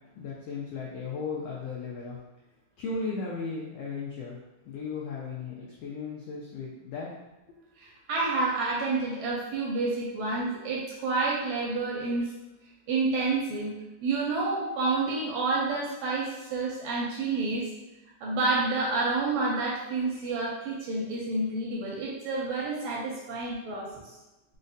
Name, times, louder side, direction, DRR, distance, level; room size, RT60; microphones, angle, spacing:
voice 1, 0.2-2.2 2.8-4.4 4.7-7.1, left 4 dB, 90° left, -4 dB, 1.4 m, -36 dB
voice 2, 7.8-12.3 12.9-13.7 14.0-17.7 18.2-23.9, right 3 dB, 80° right, -4 dB, 1.6 m, -29 dB
4.9 x 2.1 x 2.6 m, 1.0 s
omnidirectional pair, 3.5 m